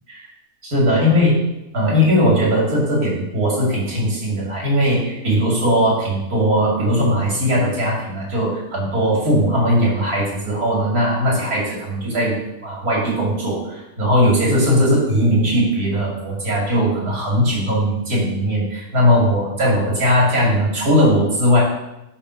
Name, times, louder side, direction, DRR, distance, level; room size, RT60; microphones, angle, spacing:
voice 1, 0.6-1.3 1.7-21.6, equal, 75° right, -4 dB, 2.9 m, -19 dB
10.0 x 3.7 x 5.7 m, 0.90 s
omnidirectional pair, 1.6 m